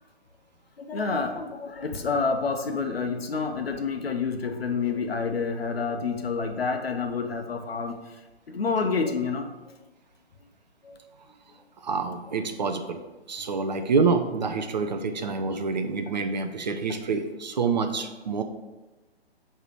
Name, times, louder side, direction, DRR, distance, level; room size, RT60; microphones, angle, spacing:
voice 1, 0.8-7.9 8.5-9.5 10.8-11.0 12.5-12.6 13.4-13.6, left 4 dB, 65° left, 5 dB, 1.0 m, -28 dB
voice 2, 11.8-13.0 13.3-18.4, right 4 dB, 45° right, 7 dB, 0.6 m, -27 dB
9.7 x 3.3 x 4.6 m, 1.1 s
figure-of-eight pair, 135°, 33 cm